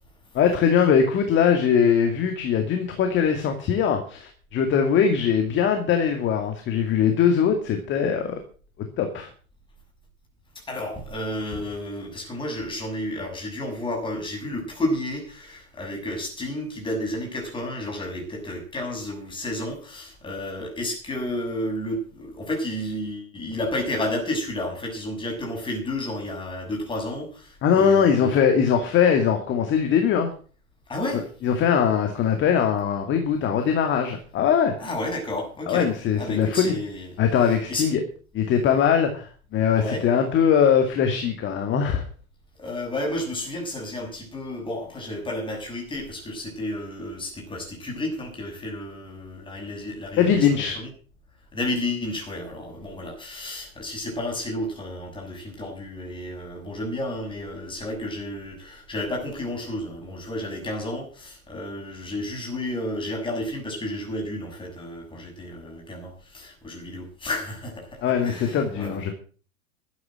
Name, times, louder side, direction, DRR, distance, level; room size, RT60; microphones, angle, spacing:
voice 1, 0.3-8.4 9.0-9.3 27.6-30.3 31.1-34.9 35.7-36.8 37.2-38.0 38.3-42.0 50.2-50.8 68.0-69.1, left 7 dB, 25° left, 5 dB, 2.3 m, -21 dB
voice 2, 10.7-28.3 30.9-31.3 34.8-35.9 36.2-37.1 37.7-37.9 39.8-40.0 42.6-50.9 51.5-69.1, left 1 dB, 10° left, 0 dB, 7.1 m, -31 dB
13.0 x 9.5 x 7.6 m, 0.40 s
figure-of-eight pair, 100°, 42 cm